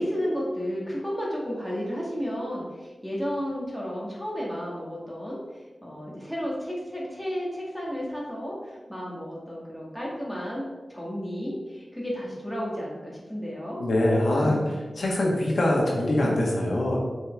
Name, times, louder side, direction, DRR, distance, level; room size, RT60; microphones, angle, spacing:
voice 1, 0.0-10.6 10.9-13.8 14.3-14.7, equal, ahead, -5 dB, 1.8 m, -32 dB
voice 2, 13.8-14.6 15.0-17.0, left 1 dB, 65° left, -3 dB, 1.5 m, -23 dB
7.1 x 4.4 x 3.5 m, 1.2 s
wide cardioid pair, 115°, 0 cm